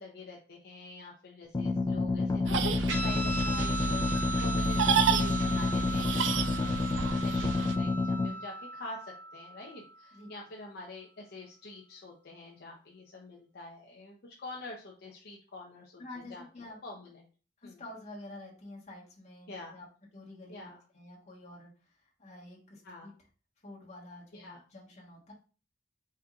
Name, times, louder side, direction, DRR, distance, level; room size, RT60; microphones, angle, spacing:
voice 1, 0.0-6.8 7.1-17.3 17.6-17.8 19.5-19.7 20.5-20.8 22.8-23.1 24.3-24.6, left 2 dB, 60° left, -1 dB, 0.7 m, -46 dB
sound 1, 1.5-8.3, left 3 dB, 20° left, 0.3 m, -30 dB
sound 2, 2.5-7.8, right 6 dB, 75° right, 0.4 m, -31 dB
Guitar, 2.9-9.8, right 1 dB, 90° right, 1.1 m, -38 dB
voice 2, 16.0-16.8 17.6-19.8 20.1-21.7 22.2-23.1 23.6-25.3, left 2 dB, 40° left, -3 dB, 1.4 m, -48 dB
4.3 x 3.5 x 2.4 m, 0.37 s
head